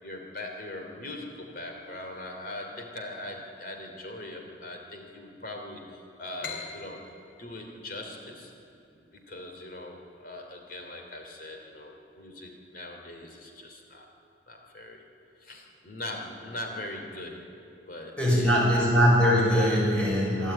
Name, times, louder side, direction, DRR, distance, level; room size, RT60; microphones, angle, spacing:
voice 1, 0.0-7.0 7.4-8.5 8.9-14.1 14.5-15.0 15.4-17.4 17.9-18.8, left 1 dB, 50° left, 2 dB, 2.9 m, -41 dB
sound 1, 6.4-9.8, left 4 dB, 65° left, 3.5 m, -43 dB
voice 2, 18.2-20.5, equal, 5° left, -6 dB, 6.0 m, -22 dB
23.5 x 12.5 x 9.0 m, 2.6 s
head